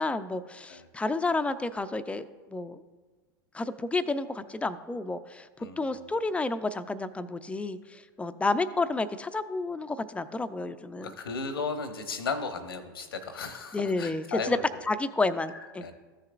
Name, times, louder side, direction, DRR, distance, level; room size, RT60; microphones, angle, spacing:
voice 1, 0.0-2.3 2.5-2.8 3.5-5.5 5.8-11.1 13.7-14.6 14.9-15.8, left 3 dB, 10° left, 11 dB, 0.4 m, -30 dB
voice 2, 5.6-6.1 11.0-14.7 15.5-15.9, left 4 dB, 85° left, 8 dB, 0.9 m, -35 dB
14.0 x 6.5 x 2.5 m, 1.3 s
hypercardioid pair, 90°, 12 cm